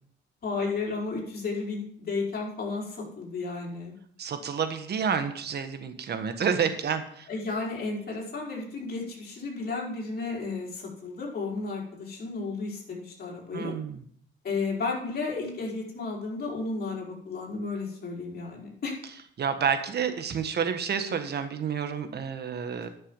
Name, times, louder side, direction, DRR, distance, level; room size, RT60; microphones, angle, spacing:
voice 1, 0.4-3.9 7.3-13.7 14.4-19.0, left 3 dB, 50° left, -3 dB, 4.7 m, -33 dB
voice 2, 4.2-7.3 13.5-14.0 19.4-22.9, right 7 dB, 55° right, 8 dB, 1.5 m, -29 dB
11.5 x 6.5 x 5.4 m, 0.62 s
cardioid pair, 90°, 20 cm